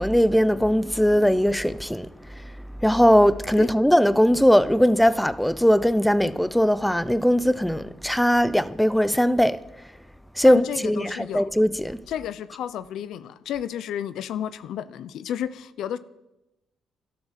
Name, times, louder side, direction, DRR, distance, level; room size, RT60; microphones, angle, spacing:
voice 1, 0.0-2.5 2.8-9.6 10.4-12.0, equal, ahead, 0.6 m, -20 dB
voice 2, 10.4-11.5 12.1-16.0, left 10 dB, 80° left, 0.6 m, -32 dB
12.5 x 12.0 x 7.5 m
cardioid pair, 90°, 0 cm